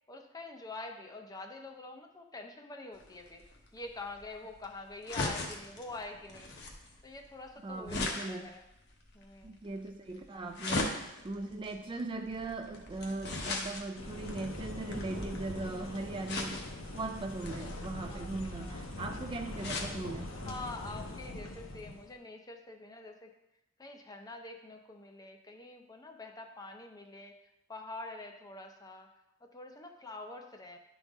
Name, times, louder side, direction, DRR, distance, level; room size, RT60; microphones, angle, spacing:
voice 1, 0.1-3.5 3.7-6.5 7.0-8.6 9.1-9.5 18.1-18.3 18.6-19.2 20.5-23.3 23.8-27.3 27.7-29.1 29.4-30.8, left 2 dB, 20° left, 4 dB, 0.6 m, -46 dB
sound 1, 2.9-15.6 16.3-16.9 17.4-20.0 20.4-20.5 20.7-20.8, left 2 dB, 55° left, 1.0 m, -39 dB
voice 2, 7.6-8.5 9.4-16.6 16.9-20.3, right 2 dB, 25° right, 5 dB, 0.3 m, -39 dB
sound 2, 12.1-21.6, right 1 dB, 45° right, 0.7 m, -50 dB
sound 3, 13.9-22.1, left 2 dB, 80° left, 1.0 m, -43 dB
10.5 x 4.0 x 3.6 m, 0.89 s
head